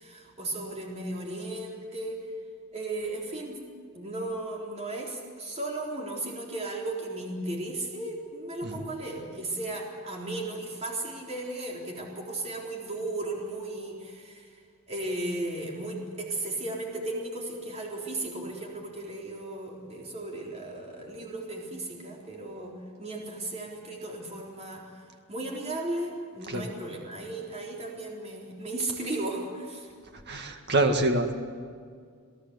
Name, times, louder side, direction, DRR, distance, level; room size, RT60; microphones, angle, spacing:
voice 1, 0.0-2.3 2.7-3.6 3.9-14.6 14.9-29.9, right 2 dB, 30° right, -1 dB, 3.9 m, -35 dB
voice 2, 30.3-31.3, right 2 dB, 50° right, 5 dB, 1.9 m, -26 dB
28.0 x 17.0 x 8.2 m, 2.1 s
head